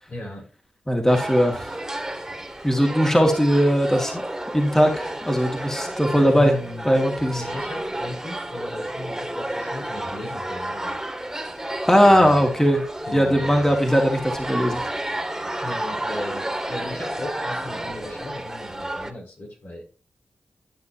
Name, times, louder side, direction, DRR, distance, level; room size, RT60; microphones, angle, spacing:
voice 1, 0.1-0.5 6.1-7.0 7.3-11.0 12.0-12.5 13.0-13.8 15.6-19.8, left 1 dB, 70° left, -4 dB, 5.9 m, -35 dB
voice 2, 0.9-1.7 2.6-4.2 4.5-6.6 6.8-7.4 11.9-12.8 13.1-14.8, equal, 15° left, 2 dB, 2.3 m, -19 dB
sound 1, 1.1-19.1, right 1 dB, 10° right, 2.2 m, -31 dB
13.0 x 6.5 x 2.9 m, 0.35 s
cardioid pair, 45°, 4 cm